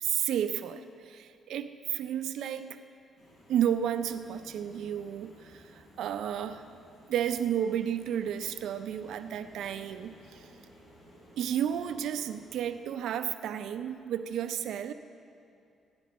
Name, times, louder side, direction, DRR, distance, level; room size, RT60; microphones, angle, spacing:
voice 1, 0.0-2.8 3.5-6.6 7.1-10.5 11.4-14.9, right 9 dB, 75° right, 9 dB, 0.5 m, -32 dB
sound 1, 3.2-12.7, equal, 80° left, 3.6 m, -56 dB
16.0 x 10.5 x 4.2 m, 2.6 s
cardioid pair, 130°, 0 cm